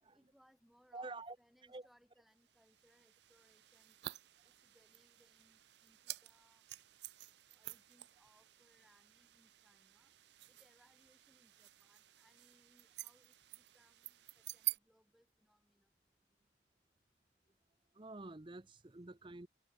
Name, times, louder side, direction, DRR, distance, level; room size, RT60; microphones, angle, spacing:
voice 1, 0.1-4.1 4.4-6.6 7.5-10.1 10.5-15.9, equal, ahead, 5.0 m, -72 dB
voice 2, 0.9-1.4 1.6-1.9 17.9-19.5, right 2 dB, 25° right, 0.7 m, -49 dB
sound 1, 2.4-14.8, right 17 dB, 70° right, 0.6 m, -49 dB
head